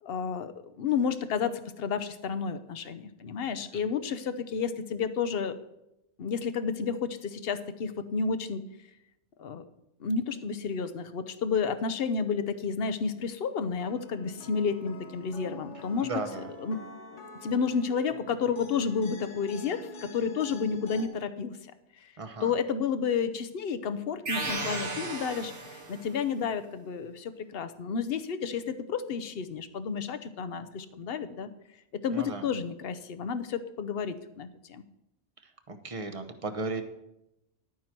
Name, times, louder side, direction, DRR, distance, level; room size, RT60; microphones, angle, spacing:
voice 1, 0.0-5.6 6.2-8.7 9.4-9.6 10.0-16.8 17.1-21.5 22.4-31.5 31.9-34.8, left 6 dB, 60° left, 12 dB, 0.9 m, -31 dB
sound 1, 13.8-21.1, left 1 dB, 80° left, 1.9 m, -46 dB
voice 2, 16.0-16.5 22.2-22.5 32.1-32.5 35.7-36.8, right 3 dB, 30° right, 7 dB, 0.9 m, -35 dB
sound 2, 24.3-26.1, right 2 dB, 85° right, 2.0 m, -34 dB
11.0 x 9.5 x 4.5 m, 0.86 s
omnidirectional pair, 1.2 m